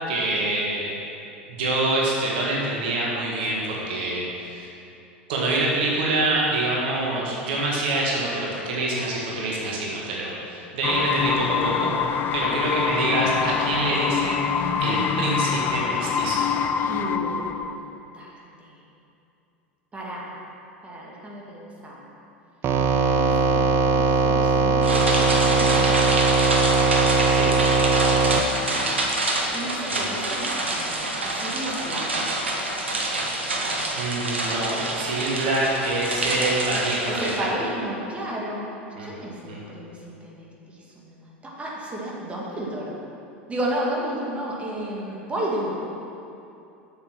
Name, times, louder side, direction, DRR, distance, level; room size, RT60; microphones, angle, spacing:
voice 1, 0.1-0.9 1.5-4.7 5.3-11.9 12.3-14.4 14.8-16.4 27.3-27.5 29.9-30.0 33.9-37.4 39.0-39.1 39.5-39.6, right 2 dB, 65° right, -4 dB, 1.8 m, -26 dB
sound 1, 10.8-17.8, left 7 dB, 35° left, 0.4 m, -25 dB
voice 2, 16.9-18.7 19.9-20.3 20.8-22.0 22.8-26.1 28.0-29.0 29.5-32.3 37.1-38.7 39.0-43.0 43.5-45.8, right 1 dB, 20° right, -4 dB, 2.0 m, -33 dB
sound 2, 22.6-28.4, right 4 dB, 40° right, 0.7 m, -20 dB
sound 3, 24.8-37.4, right 2 dB, 85° right, 1.1 m, -26 dB
7.8 x 6.9 x 6.1 m, 2.8 s
figure-of-eight pair, 80°, 6 cm